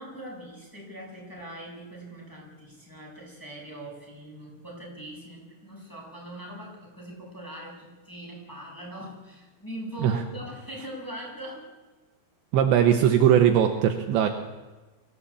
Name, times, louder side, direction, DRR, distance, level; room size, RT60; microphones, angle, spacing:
voice 1, 0.0-11.7, right 1 dB, 5° left, -3 dB, 7.1 m, -41 dB
voice 2, 12.5-14.3, right 9 dB, 75° right, 6 dB, 3.1 m, -20 dB
24.0 x 16.0 x 8.6 m, 1.2 s
omnidirectional pair, 5.8 m